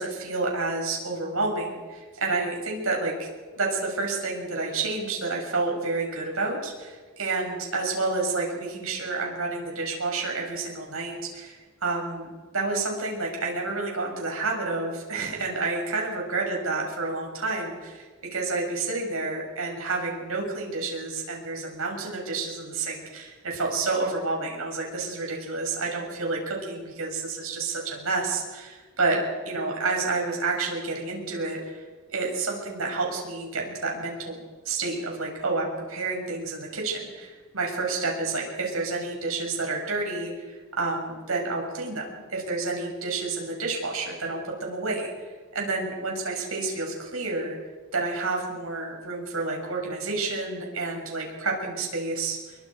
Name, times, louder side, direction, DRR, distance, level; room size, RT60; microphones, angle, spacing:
voice 1, 0.0-3.3 3.6-29.2 29.4-31.8 32.1-47.6 47.9-52.6, right 3 dB, 75° right, 0 dB, 7.6 m, -29 dB
29.5 x 24.0 x 5.3 m, 1.4 s
head